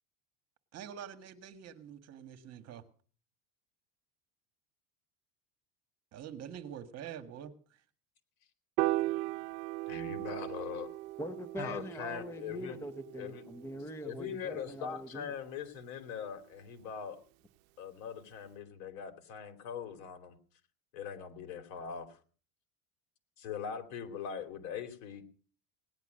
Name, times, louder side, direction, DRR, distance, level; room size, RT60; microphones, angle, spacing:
voice 1, 0.7-2.8 6.1-7.8, right 9 dB, 35° right, 9 dB, 1.7 m, -46 dB
Piano, 8.8-15.1, right 19 dB, 70° right, 0.7 m, -38 dB
voice 2, 9.9-10.9 11.6-12.8 13.2-13.4 14.0-17.2 17.8-20.4 20.9-22.2 23.4-25.2, left 7 dB, 75° left, 8 dB, 3.0 m, -41 dB
voice 3, 11.2-15.3, equal, 5° left, 9 dB, 0.7 m, -43 dB
18.0 x 10.5 x 6.5 m, 0.42 s
supercardioid pair, 150°, 43 cm